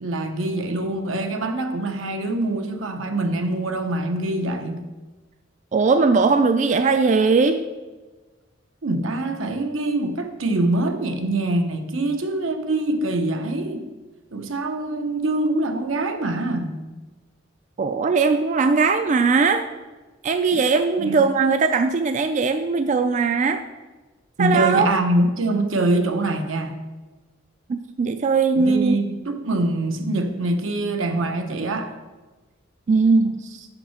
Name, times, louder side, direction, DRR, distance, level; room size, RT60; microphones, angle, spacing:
voice 1, 0.0-4.8 8.8-13.9 14.3-16.8 21.0-21.3 24.4-26.8 28.6-31.9, right 2 dB, 80° right, 6 dB, 0.9 m, -24 dB
voice 2, 5.7-7.6 17.8-19.6 20.2-23.6 24.4-24.9 27.7-29.0 32.9-33.7, right 4 dB, 40° right, 8 dB, 0.3 m, -19 dB
6.5 x 5.8 x 5.6 m, 1.2 s
head